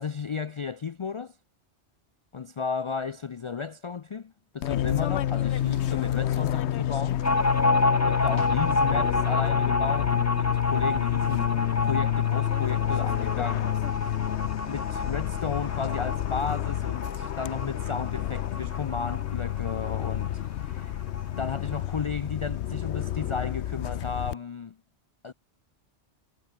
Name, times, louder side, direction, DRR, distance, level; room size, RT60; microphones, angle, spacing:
voice 1, 0.0-1.4 2.3-7.2 8.1-14.0 14.6-21.0 21.4-24.8 25.2-25.3, left 5 dB, 55° left, 0.3 m, -34 dB
Fixed-wing aircraft airplane, 4.6-24.3, left 11 dB, 80° left, 0.9 m, -28 dB
sound 1, 4.8-11.5, right 2 dB, 55° right, 3.8 m, -57 dB
sound 2, 7.2-20.4 20.6-20.7 21.0-21.8, left 2 dB, 15° left, 1.2 m, -29 dB
omnidirectional pair, 1.1 m